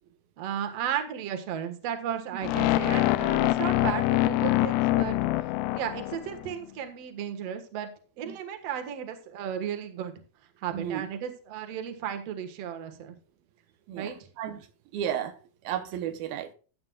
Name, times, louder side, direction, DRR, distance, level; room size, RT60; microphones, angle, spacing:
voice 1, 0.4-5.2 5.7-7.9 8.2-10.1 10.6-13.1 14.0-14.3, right 9 dB, 55° right, 2.1 m, -34 dB
sound 1, 2.4-6.5, left 16 dB, 80° left, 1.9 m, -25 dB
voice 2, 10.7-11.1 13.9-14.1 14.4-14.7 14.9-15.4 15.6-16.5, right 10 dB, 85° right, 2.7 m, -32 dB
15.0 x 8.9 x 2.4 m
omnidirectional pair, 4.2 m